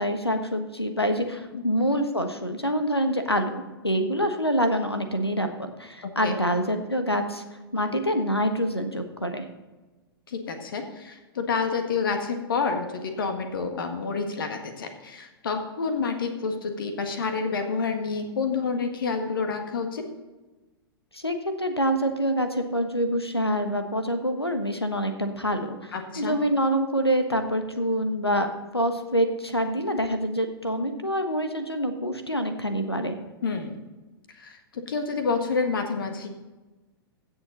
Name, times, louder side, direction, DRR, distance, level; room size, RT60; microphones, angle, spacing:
voice 1, 0.0-5.5 5.8-7.4 7.7-9.4 21.1-28.5 28.7-33.2, equal, 90° left, 7 dB, 1.3 m, -26 dB
voice 2, 6.0-6.4 10.3-20.0 25.9-26.3 33.4-33.8 34.4-36.3, left 4 dB, 60° left, 6 dB, 1.6 m, -29 dB
16.0 x 7.2 x 3.9 m, 1.2 s
figure-of-eight pair, 100°, 13 cm